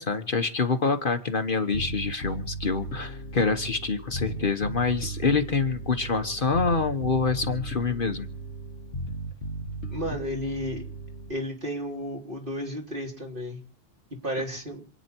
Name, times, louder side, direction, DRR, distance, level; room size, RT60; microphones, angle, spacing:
voice 1, 0.0-8.3, left 4 dB, 50° left, 8 dB, 1.3 m, -26 dB
Bass guitar, 1.7-11.3, right 2 dB, 70° left, 1.5 m, -36 dB
voice 2, 9.9-10.8 11.3-13.6 14.2-14.8, equal, 45° right, 0 dB, 3.9 m, -32 dB
27.5 x 9.6 x 4.5 m, 0.39 s
omnidirectional pair, 1.2 m